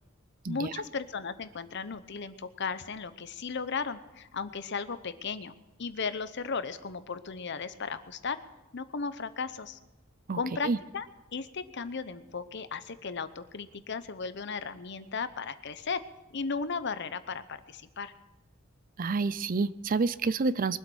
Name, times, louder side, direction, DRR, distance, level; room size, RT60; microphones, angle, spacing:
voice 1, 0.5-5.5 5.8-8.4 8.7-9.8 10.3-11.1 11.3-16.0 16.3-18.1, left 5 dB, 60° left, 13 dB, 0.8 m, -35 dB
voice 2, 19.0-20.8, right 4 dB, 45° right, 17 dB, 0.5 m, -28 dB
22.5 x 8.2 x 6.3 m, 1.0 s
head